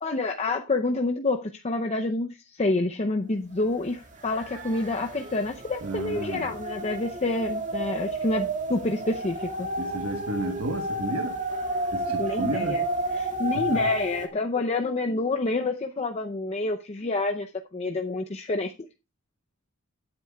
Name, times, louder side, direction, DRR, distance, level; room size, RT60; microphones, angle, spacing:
voice 1, 0.0-9.7 12.2-12.8 13.1-17.5 17.7-18.7, left 2 dB, 30° left, 0.6 m, -28 dB
sound 1, 3.7-3.8 4.0-14.3, right 2 dB, 35° right, 2.1 m, -31 dB
voice 2, 5.8-6.5 9.8-11.4 11.9-12.8 13.5-13.8, right 1 dB, 75° right, 1.3 m, -32 dB
17.0 x 8.9 x 2.3 m
head